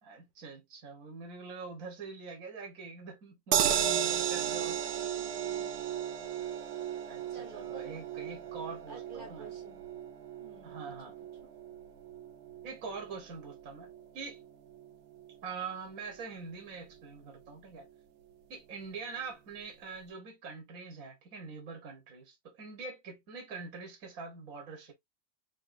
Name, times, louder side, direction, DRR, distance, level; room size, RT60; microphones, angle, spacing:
voice 1, 0.0-4.8 7.0-9.5 10.6-11.1 12.6-13.9 14.1-14.4 15.4-17.9 18.5-24.9, right 4 dB, 60° right, 1.7 m, -44 dB
sound 1, 3.5-15.7 16.1-16.2 16.5-16.6, right 9 dB, 90° right, 1.2 m, -35 dB
voice 2, 4.2-5.9 7.3-7.7 8.9-9.8 10.4-10.9 11.4-11.5, right 3 dB, 35° right, 1.4 m, -52 dB
3.8 x 3.8 x 2.5 m
omnidirectional pair, 1.7 m